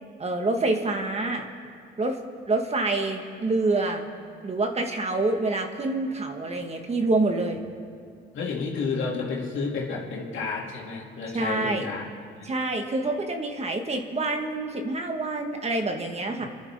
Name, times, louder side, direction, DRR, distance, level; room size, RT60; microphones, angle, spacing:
voice 1, 0.2-1.5 2.0-2.2 2.5-4.1 4.4-7.6 11.3-11.9 12.4-16.5, right 2 dB, 35° right, 3 dB, 1.8 m, -27 dB
voice 2, 8.3-12.1 12.4-12.5, left 4 dB, 75° left, -3 dB, 2.9 m, -31 dB
27.5 x 11.0 x 3.8 m, 2.2 s
cardioid pair, 90°, 20 cm